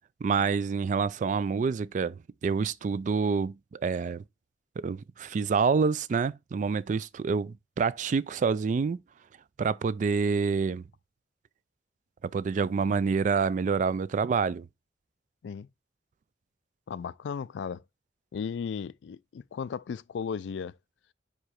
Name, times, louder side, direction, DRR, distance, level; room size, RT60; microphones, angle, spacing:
voice 1, 0.2-4.2 4.8-9.0 9.6-10.8 12.3-14.7, right 5 dB, 45° right, 0.3 m, -27 dB
voice 2, 16.9-17.8 18.3-20.8, left 6 dB, 80° left, 0.3 m, -35 dB
5.0 x 4.7 x 4.3 m
head